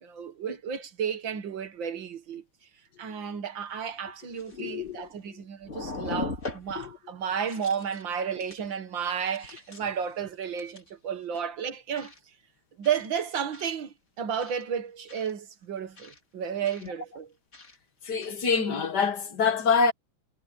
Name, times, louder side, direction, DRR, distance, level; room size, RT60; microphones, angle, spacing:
voice 1, 0.0-2.4 3.0-12.1 12.8-17.3, right 7 dB, 75° right, 2.2 m, -32 dB
sound 1, 3.7-3.8 4.3-5.3 5.6-6.9 7.3-8.0 8.4-8.7 9.0-10.0 10.6-10.9 12.0-12.2 12.8-13.1 13.5-13.8 14.4-14.6 15.1-15.3 16.0-16.2 16.6-16.9 17.5-17.8 18.2-18.3, left 3 dB, 35° left, 3.3 m, -40 dB
voice 2, 4.6-5.1 6.8-6.9 18.0-19.9, left 5 dB, 60° left, 2.1 m, -25 dB
omnidirectional pair, 2.1 m